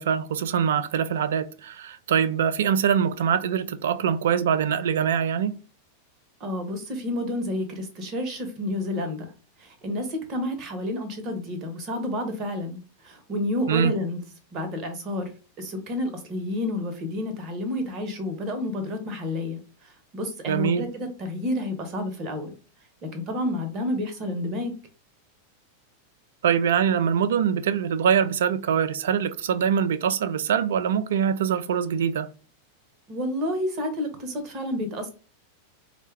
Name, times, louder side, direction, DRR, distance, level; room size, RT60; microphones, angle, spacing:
voice 1, 0.0-5.6 13.7-13.9 20.5-20.8 26.4-32.3, right 8 dB, 60° right, 0.3 m, -23 dB
voice 2, 6.4-9.3 9.6-14.2 14.5-15.3 15.6-22.5 23.1-24.7 33.1-35.1, left 1 dB, 35° right, 0.9 m, -30 dB
4.1 x 2.2 x 3.2 m
figure-of-eight pair, 90°, 0 cm